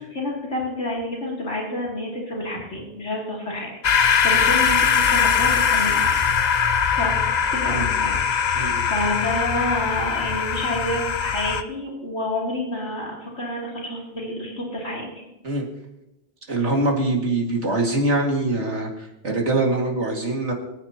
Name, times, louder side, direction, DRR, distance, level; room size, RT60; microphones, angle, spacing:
voice 1, 0.0-3.7 4.0-6.3 6.9-7.2 7.5-15.1, left 1 dB, 75° left, -4 dB, 3.3 m, -29 dB
sound 1, 3.8-11.6, left 7 dB, 45° left, 0.6 m, -21 dB
voice 2, 8.5-8.8 15.4-15.7 16.5-20.5, right 2 dB, 70° right, 0 dB, 2.6 m, -23 dB
24.0 x 9.1 x 2.9 m, 0.92 s
omnidirectional pair, 1.2 m